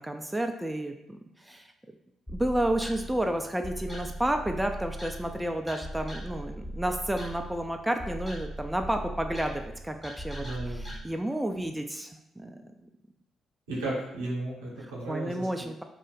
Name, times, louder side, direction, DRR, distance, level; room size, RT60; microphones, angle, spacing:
voice 1, 0.0-1.7 2.3-12.1 12.4-12.7 14.8-15.8, right 1 dB, 10° right, 5 dB, 0.3 m, -31 dB
sound 1, 2.3-11.0, right 1 dB, 15° left, 1.0 m, -39 dB
voice 2, 10.4-10.9 13.7-15.5, right 2 dB, 80° right, -5 dB, 0.8 m, -34 dB
2.5 x 2.1 x 3.9 m, 0.85 s
hypercardioid pair, 40°, 0 cm